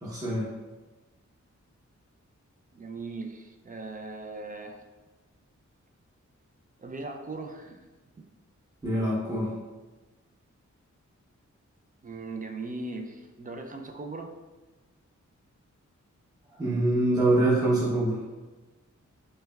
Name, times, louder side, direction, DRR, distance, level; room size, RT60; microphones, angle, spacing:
voice 1, 0.0-0.5 8.8-9.5 16.6-18.2, right 1 dB, 10° right, -7 dB, 0.7 m, -24 dB
voice 2, 2.7-4.8 6.8-7.8 12.0-14.3, right 3 dB, 30° right, 3 dB, 0.3 m, -38 dB
3.2 x 3.2 x 2.2 m, 1.2 s
wide cardioid pair, 80°, 30 cm